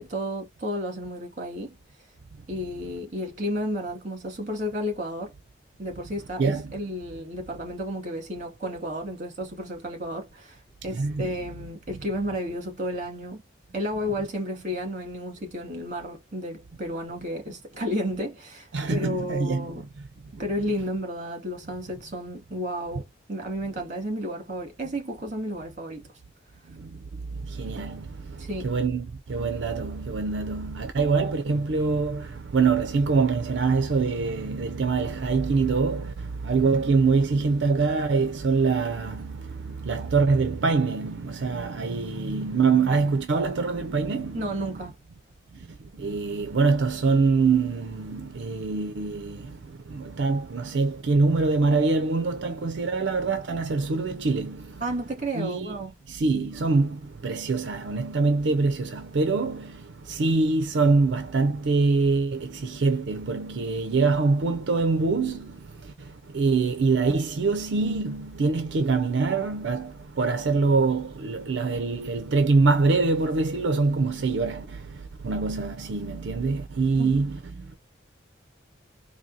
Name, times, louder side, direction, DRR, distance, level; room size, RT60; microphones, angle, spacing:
voice 1, 0.0-1.8 2.5-5.3 5.8-13.4 13.7-19.9 20.4-26.0 28.4-28.8 44.3-45.0 54.8-55.9 77.0-77.1, equal, 40° right, 2.1 m, -32 dB
voice 2, 6.4-6.7 10.9-11.4 18.7-19.7 26.7-27.0 27.4-44.8 45.5-54.8 55.3-55.8 56.1-77.8, right 4 dB, 70° right, 0.5 m, -25 dB
4.2 x 2.7 x 2.7 m
head